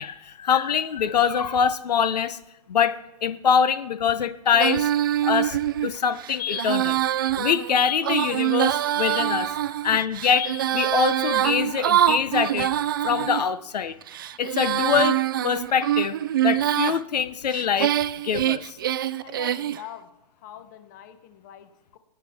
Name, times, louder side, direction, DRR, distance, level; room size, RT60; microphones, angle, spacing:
voice 1, 0.0-2.4 2.7-4.9 5.2-9.5 9.8-12.7 13.0-14.0 14.4-15.2 15.4-16.2 16.4-17.9 18.2-18.8, left 7 dB, 85° left, 14 dB, 0.8 m, -24 dB
Female singing, 4.5-13.4 14.0-17.0 17.5-19.8, right 12 dB, 35° right, 0.3 m, -24 dB
voice 2, 19.2-22.0, left 10 dB, 30° left, 10 dB, 0.9 m, -44 dB
24.5 x 9.5 x 3.5 m, 0.93 s
hypercardioid pair, 170°, 20 cm